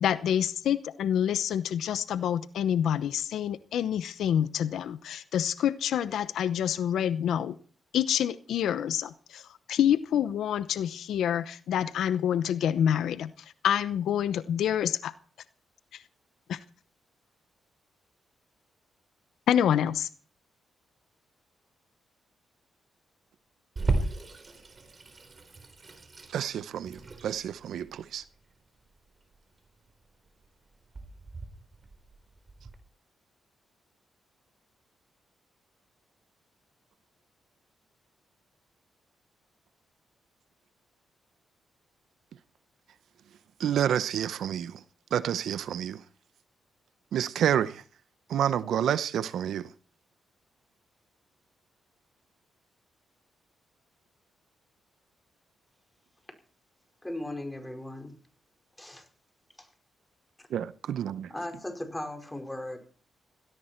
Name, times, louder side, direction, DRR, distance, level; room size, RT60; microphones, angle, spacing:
voice 1, 0.0-7.5 7.9-9.4 9.7-13.3 13.6-15.1 15.9-16.0 16.5-16.6 19.5-20.1, left 9 dB, 85° left, 0.8 m, -27 dB
Water tap faucet / Sink (filling or washing), 23.8-32.7, right 3 dB, 35° right, 4.1 m, -36 dB
voice 2, 26.3-28.2 43.6-44.7 45.1-46.0 47.1-47.8 48.3-49.7 60.5-61.3, right 9 dB, 80° right, 0.8 m, -29 dB
voice 3, 57.0-58.2 58.8-59.1 59.6-59.7 60.4-60.5 61.3-62.8, left 1 dB, 10° left, 5.0 m, -37 dB
17.5 x 17.0 x 4.5 m
cardioid pair, 105°, 0 cm